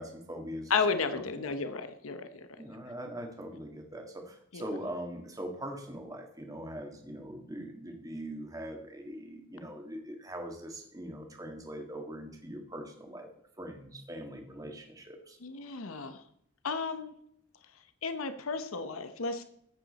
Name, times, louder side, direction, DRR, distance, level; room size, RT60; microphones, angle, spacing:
voice 1, 0.0-0.7 1.1-1.5 2.6-13.3 13.6-15.4, equal, 15° right, 3 dB, 1.7 m, -42 dB
voice 2, 0.7-2.3 4.5-4.6 15.4-16.2 16.6-17.1 18.0-19.4, left 5 dB, 80° left, 10 dB, 0.9 m, -32 dB
14.0 x 8.7 x 4.2 m, 0.69 s
head